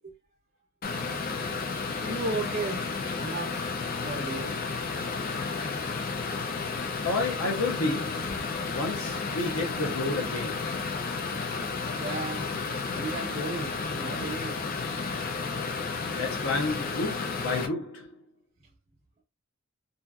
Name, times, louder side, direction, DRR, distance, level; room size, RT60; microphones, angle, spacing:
sound 1, 0.8-17.7, left 4 dB, 45° left, 0.4 m, -32 dB
voice 1, 2.0-3.7 4.0-4.6 11.9-12.5 12.9-14.7, right 3 dB, 35° right, 0.7 m, -35 dB
voice 2, 7.0-8.3 8.7-10.7 16.1-18.1, left 2 dB, 85° left, 0.7 m, -31 dB
2.7 x 2.5 x 2.3 m
head